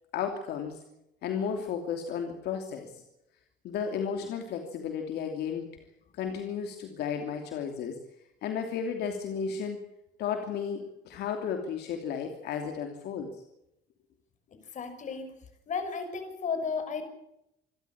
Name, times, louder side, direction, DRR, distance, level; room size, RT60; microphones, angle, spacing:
voice 1, 0.1-0.8 1.2-3.0 3.6-5.7 6.1-8.0 8.4-9.8 10.2-13.3, left 7 dB, 75° left, 4 dB, 2.9 m, -33 dB
voice 2, 14.7-15.3 15.7-17.0, left 5 dB, 45° left, 8 dB, 5.7 m, -33 dB
27.0 x 13.0 x 8.7 m, 0.81 s
cardioid pair, 110°, 17 cm